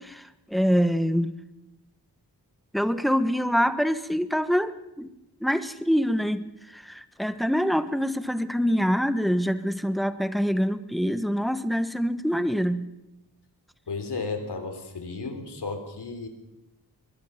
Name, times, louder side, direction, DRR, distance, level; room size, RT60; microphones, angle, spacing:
voice 1, 0.0-1.3 2.7-5.1 5.4-12.9, equal, ahead, 12 dB, 1.2 m, -25 dB
voice 2, 13.9-16.3, left 4 dB, 85° left, 6 dB, 3.6 m, -33 dB
23.5 x 21.5 x 5.9 m, 0.92 s
wide cardioid pair, 75°, 39 cm